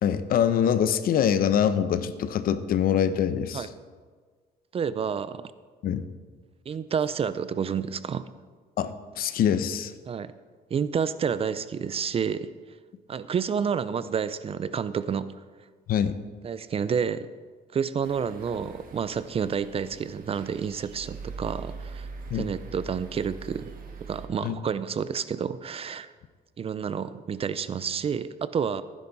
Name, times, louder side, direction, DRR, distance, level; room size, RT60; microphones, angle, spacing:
voice 1, 0.0-3.7 5.8-6.1 8.8-9.9 15.9-16.1 22.3-22.4 24.4-24.6, left 9 dB, 60° left, 12 dB, 0.8 m, -24 dB
voice 2, 4.7-5.5 6.7-8.2 10.1-10.3 10.7-12.5 13.1-15.3 16.4-17.3 17.7-22.1 22.3-23.7 24.0-26.1 26.6-28.8, right 7 dB, 35° right, 14 dB, 0.5 m, -29 dB
sound 1, 18.0-24.3, right 4 dB, 55° right, 1.6 m, -42 dB
15.5 x 10.0 x 4.1 m, 1.5 s
cardioid pair, 110°, 17 cm